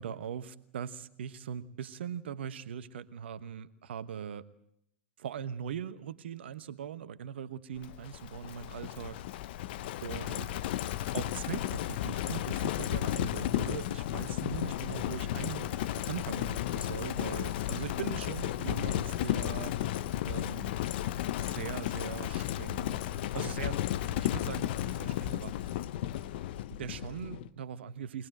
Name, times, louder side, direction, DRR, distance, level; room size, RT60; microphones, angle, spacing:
voice 1, 0.0-4.4 5.2-9.2 10.0-10.6 11.1-19.7 20.2-20.8 21.4-23.0 23.3-23.8 24.2-25.7 26.7-28.3, right 8 dB, 70° right, 14 dB, 1.1 m, -40 dB
Livestock farm animals working animals, 7.8-27.5, left 13 dB, 60° left, 0.8 m, -34 dB
23.5 x 19.5 x 7.8 m, 0.72 s
hypercardioid pair, 90°, 6 cm